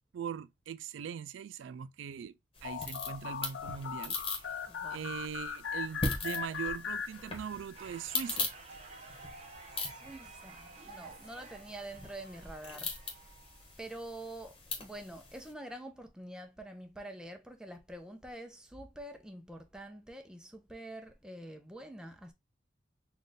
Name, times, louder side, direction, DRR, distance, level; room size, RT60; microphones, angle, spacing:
voice 1, 0.1-2.4 2.6-4.5 4.9-8.5, right 8 dB, 85° right, 0.3 m, -41 dB
sound 1, 2.6-7.7, left 7 dB, 90° left, 0.5 m, -39 dB
sound 2, 2.6-15.5, left 3 dB, 30° left, 1.2 m, -41 dB
voice 2, 4.7-5.1 6.3-6.4 9.9-13.2 13.8-22.3, right 1 dB, 5° right, 0.6 m, -46 dB
sound 3, 7.7-13.9, right 4 dB, 35° right, 0.9 m, -52 dB
4.3 x 2.4 x 3.1 m
head